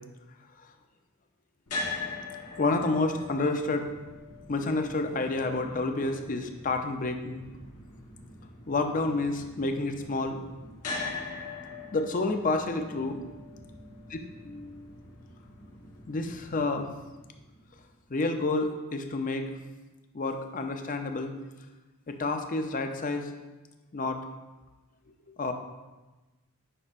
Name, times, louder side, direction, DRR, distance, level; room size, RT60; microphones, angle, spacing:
sound 1, 1.7-17.8, left 3 dB, 85° left, 1.3 m, -42 dB
voice 1, 2.6-3.9 4.5-7.4 8.7-10.4 11.9-13.3 14.1-14.2 14.4-15.1 16.1-16.9 18.1-19.5 20.1-21.3 22.1-23.3 23.9-24.2 25.3-25.5, left 3 dB, 35° left, 6 dB, 0.5 m, -29 dB
9.9 x 5.3 x 2.5 m, 1.2 s
head